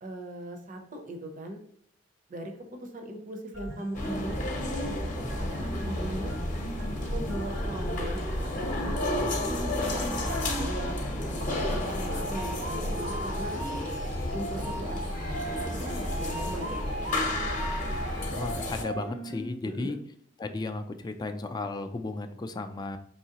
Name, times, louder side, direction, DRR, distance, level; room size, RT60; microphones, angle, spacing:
voice 1, 0.0-1.6 2.3-2.5 2.8-5.0 5.4-6.4 7.0-10.9 11.4-13.6 14.3-17.5 19.6-20.0, right 1 dB, 45° right, 4 dB, 0.6 m, -39 dB
sound 1, 3.5-19.5, right 1 dB, 90° right, 1.3 m, -38 dB
sound 2, 3.9-18.8, left 1 dB, 40° left, 0.8 m, -32 dB
voice 2, 18.3-20.0 20.4-23.0, left 3 dB, 20° left, 8 dB, 0.3 m, -34 dB
4.7 x 3.0 x 2.8 m, 0.65 s
head